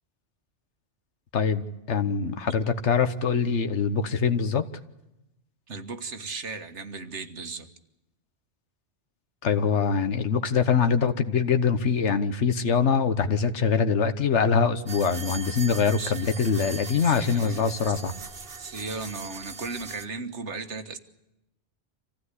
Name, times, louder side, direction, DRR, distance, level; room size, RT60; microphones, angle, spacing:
voice 1, 1.9-4.6 9.4-18.1, left 6 dB, 85° left, 10 dB, 1.4 m, -23 dB
voice 2, 5.7-7.7 16.0-16.1 17.0-17.7 18.6-21.0, right 4 dB, 85° right, 7 dB, 1.8 m, -36 dB
sound 1, 14.9-20.0, right 4 dB, 60° right, 1.8 m, -40 dB
26.0 x 15.5 x 9.8 m, 0.93 s
omnidirectional pair, 1.2 m